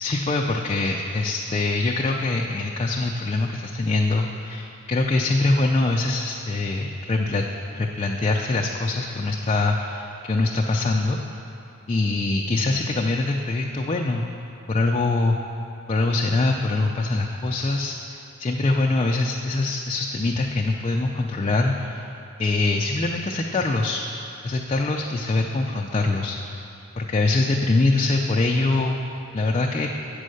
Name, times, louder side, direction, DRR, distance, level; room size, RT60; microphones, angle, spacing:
voice 1, 0.0-7.4 7.7-11.2 11.9-14.3 14.7-15.4 15.9-22.1 22.4-24.0 24.4-26.6 27.0-29.0 29.3-29.9, left 2 dB, 25° left, 0 dB, 0.4 m, -23 dB
8.3 x 5.4 x 6.4 m, 2.9 s
head